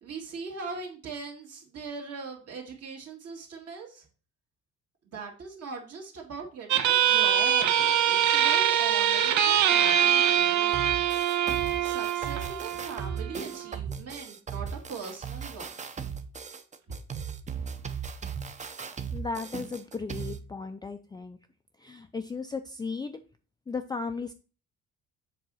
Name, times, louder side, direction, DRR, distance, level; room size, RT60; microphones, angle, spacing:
voice 1, 0.0-4.1 5.1-10.9 11.8-15.8, right 4 dB, 55° right, -1 dB, 2.1 m, -40 dB
sound 1, 6.7-13.7, right 10 dB, 75° right, 1.1 m, -24 dB
sound 2, 10.7-20.4, right 6 dB, 25° right, 0.7 m, -37 dB
voice 2, 19.1-21.4 21.8-23.2 23.7-24.3, left 4 dB, 15° left, 7 dB, 0.4 m, -35 dB
7.2 x 4.0 x 6.2 m, 0.36 s
cardioid pair, 140°, 30 cm